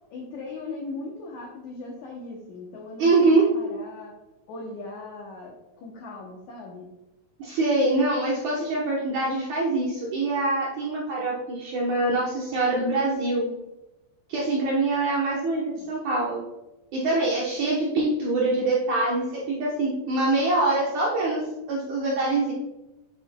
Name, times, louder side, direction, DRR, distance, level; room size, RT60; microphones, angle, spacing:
voice 1, 0.1-4.1 4.5-6.9 15.5-15.9, left 3 dB, 85° left, -1 dB, 1.6 m, -39 dB
voice 2, 3.0-3.5 7.4-13.5 14.3-16.4 16.9-22.5, right 2 dB, 70° right, -4 dB, 1.9 m, -24 dB
8.9 x 6.8 x 2.2 m, 0.97 s
omnidirectional pair, 4.7 m